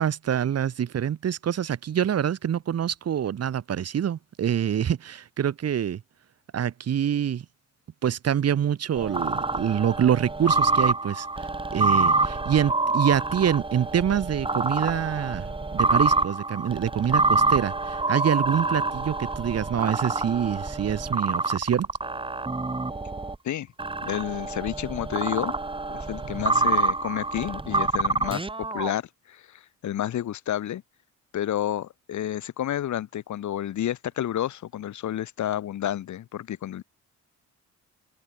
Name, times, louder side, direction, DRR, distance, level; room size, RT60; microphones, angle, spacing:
voice 1, 0.0-6.0 6.5-7.4 8.0-11.3 11.7-21.9 26.5-26.6, right 9 dB, 55° right, 2.2 m, -26 dB
sound 1, 8.9-23.3 23.8-28.9, right 3 dB, 15° right, 2.5 m, -26 dB
voice 2, 24.0-25.5 25.9-30.8 31.3-36.8, left 11 dB, 70° left, 4.2 m, -30 dB
cardioid pair, 90°, 30 cm